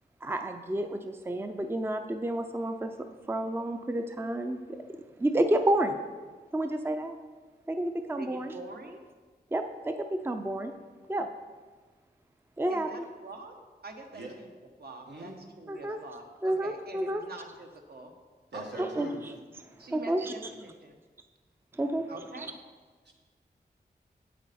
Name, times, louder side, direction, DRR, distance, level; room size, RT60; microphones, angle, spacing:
voice 1, 0.2-2.9 3.3-4.8 5.2-6.0 6.5-7.1 7.7-8.5 9.5-10.7 11.1-11.3 12.6-12.9 15.7-16.0 16.4-17.2 18.8-19.1 19.9-20.3 21.8-22.1, right 1 dB, 15° right, 7 dB, 0.4 m, -30 dB
voice 2, 8.2-9.0 12.7-13.5 13.8-14.5 14.8-18.1 18.5-18.9 19.8-21.0 22.1-22.5, right 2 dB, 65° right, 4 dB, 1.0 m, -45 dB
voice 3, 15.1-15.4 18.5-19.2 23.1-23.2, right 2 dB, 80° right, -1 dB, 1.6 m, -41 dB
8.4 x 8.1 x 4.2 m, 1.4 s
wide cardioid pair, 100°, 17 cm